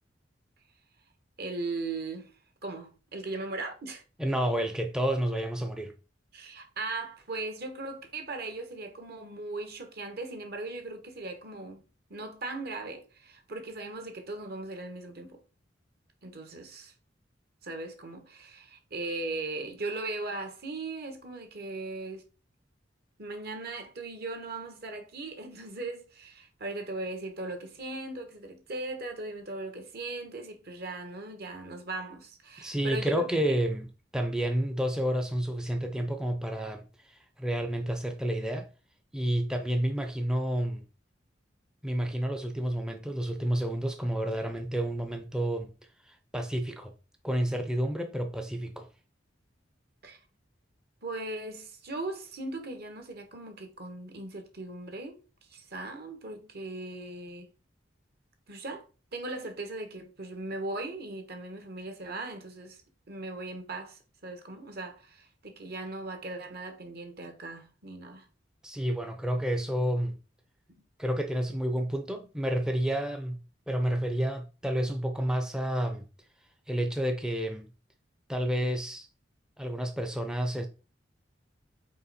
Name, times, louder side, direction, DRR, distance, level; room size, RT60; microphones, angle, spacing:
voice 1, 1.4-2.3 2.6-4.0 6.3-11.8 12.1-15.4 16.2-16.9 17.6-22.3 23.2-33.6 50.0-50.2 51.0-57.5 58.5-58.9 59.1-62.8 63.1-68.3, right 2 dB, 60° right, 1.4 m, -38 dB
voice 2, 4.2-5.9 32.6-33.9 34.1-38.7 39.1-40.8 41.8-45.7 46.1-46.9 47.2-48.9 68.6-70.2 71.0-73.4 73.7-76.0 76.7-77.7 78.3-79.1 79.6-80.7, right 1 dB, 5° right, 0.5 m, -30 dB
5.4 x 4.4 x 4.2 m
head